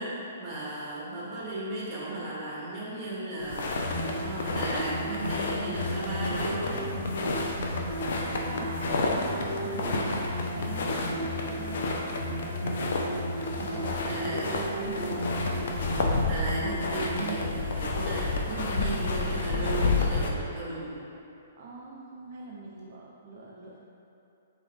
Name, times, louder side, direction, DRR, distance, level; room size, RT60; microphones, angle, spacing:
voice 1, 0.0-6.8 13.5-14.5 16.0-21.0, right 2 dB, 25° right, -7 dB, 1.3 m, -35 dB
voice 2, 1.2-2.3 8.1-8.8 9.1-12.1 13.7-15.3 18.9-19.9 21.6-23.8, right 3 dB, 55° right, -4 dB, 0.4 m, -43 dB
sound 1, 3.4-20.3, left 3 dB, 65° left, 0.5 m, -31 dB
sound 2, 3.8-17.5, equal, 85° left, 1.5 m, -34 dB
3.6 x 3.5 x 3.4 m, 2.8 s
hypercardioid pair, 130°, 0 cm